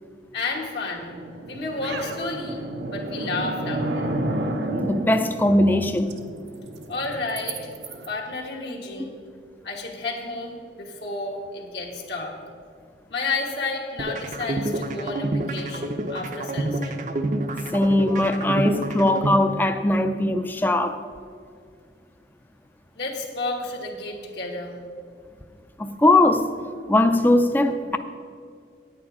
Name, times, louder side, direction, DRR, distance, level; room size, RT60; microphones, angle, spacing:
voice 1, 0.3-1.2 1.5-2.6 2.9-3.9 6.9-7.6 8.1-9.1 9.6-12.3 13.1-16.9 23.0-24.8, left 3 dB, 70° left, 1.3 m, -31 dB
sound 1, 1.0-8.1, right 1 dB, 80° right, 0.9 m, -31 dB
voice 2, 4.8-6.1 17.7-21.0 25.8-26.5 26.9-28.0, left 1 dB, 10° left, 0.4 m, -20 dB
sound 2, 14.0-20.0, right 1 dB, 45° right, 0.6 m, -28 dB
9.4 x 8.6 x 4.8 m
head